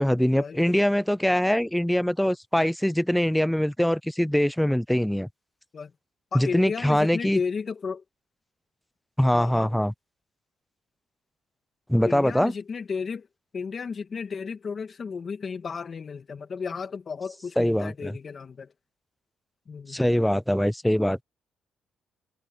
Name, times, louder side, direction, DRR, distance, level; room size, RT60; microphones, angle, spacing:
voice 1, 0.0-5.3 6.3-7.4 9.2-9.9 11.9-12.5 17.6-18.2 19.9-21.2, equal, 5° left, 0.3 m, -23 dB
voice 2, 6.3-8.0 9.3-9.7 12.1-13.3 13.5-18.7 19.7-20.0, left 5 dB, 45° left, 2.0 m, -33 dB
cardioid pair, 90°, 0 cm